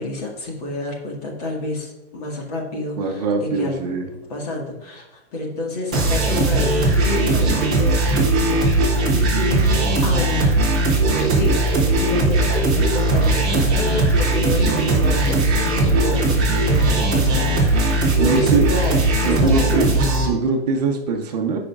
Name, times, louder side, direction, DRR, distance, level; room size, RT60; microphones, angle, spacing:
voice 1, 0.0-3.8 4.3-10.5 11.1-19.9, left 2 dB, 40° left, 0 dB, 1.7 m, -29 dB
voice 2, 3.0-4.1 18.2-18.7 19.2-19.9 20.2-21.6, right 4 dB, 40° right, 3 dB, 0.8 m, -22 dB
sound 1, 5.9-20.3, right 2 dB, 5° right, 0.3 m, -18 dB
13.5 x 5.1 x 2.4 m, 1.0 s
hypercardioid pair, 175°, 32 cm